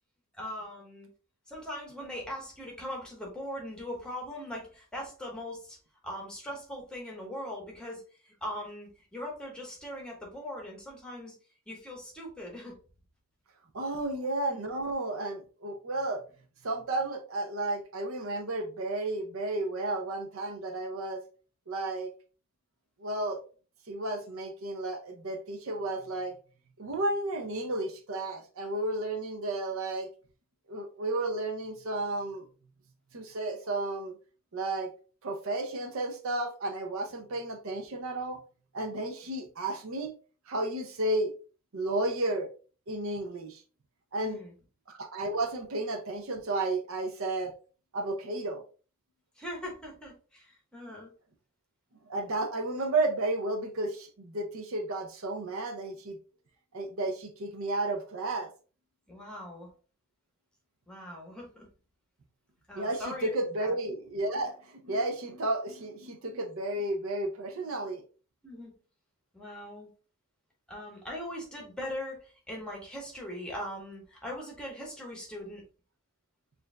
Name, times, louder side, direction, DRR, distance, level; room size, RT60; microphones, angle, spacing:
voice 1, 0.3-1.1 1.5-5.8 6.0-11.4 11.7-12.8 44.1-44.5 49.4-51.1 59.1-59.7 60.9-61.7 62.7-63.3 63.6-63.8 68.4-68.7 69.3-69.9 70.7-75.6, left 1 dB, 5° left, 1.1 m, -40 dB
voice 2, 13.7-16.2 16.6-21.2 21.7-22.1 23.0-23.4 23.9-26.4 26.8-30.1 30.7-32.5 33.1-34.2 34.5-34.9 35.2-38.4 38.7-40.1 40.5-41.3 41.7-42.5 42.9-43.6 44.1-44.4 44.9-47.5 47.9-48.6 52.1-56.2 56.7-58.5 62.8-68.0, right 2 dB, 70° right, 0.6 m, -32 dB
6.6 x 2.6 x 2.2 m
head